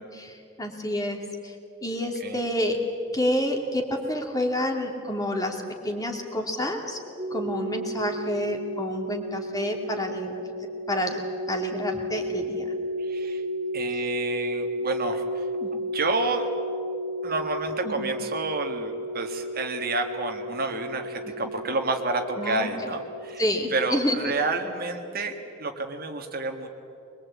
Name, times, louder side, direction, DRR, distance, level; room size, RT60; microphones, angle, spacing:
voice 1, 0.2-1.6 1.8-2.8 3.1-7.0 7.3-10.4 10.9-11.2 11.5-12.7 15.6-15.7 17.8-18.1 21.2-21.5 22.4-22.7 23.4-24.2, left 1 dB, 20° left, 2 dB, 2.6 m, -29 dB
sound 1, 7.2-23.7, equal, 30° right, 1.3 m, -33 dB
voice 2, 13.0-13.4 13.7-15.5 15.9-16.5 17.2-23.4 23.7-26.7, right 3 dB, 50° right, 5 dB, 1.8 m, -29 dB
23.0 x 22.0 x 8.6 m, 2.7 s
head